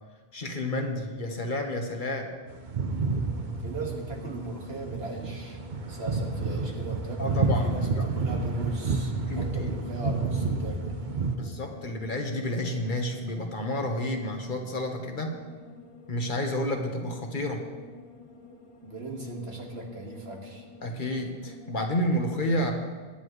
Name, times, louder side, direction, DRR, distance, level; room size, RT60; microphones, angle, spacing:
voice 1, 0.3-2.3 7.2-8.1 9.3-9.7 11.3-15.4 16.1-17.6 20.8-22.7, left 1 dB, 55° left, 3 dB, 1.4 m, -30 dB
sound 1, 2.5-11.4, right 3 dB, 50° right, 0.9 m, -30 dB
sound 2, 3.0-21.8, left 2 dB, 35° left, 0.9 m, -49 dB
voice 2, 3.6-5.6 5.9-11.0 18.8-20.6 22.6-22.7, right 3 dB, 75° right, 0 dB, 2.1 m, -38 dB
20.0 x 10.0 x 3.2 m, 1.4 s
omnidirectional pair, 1.0 m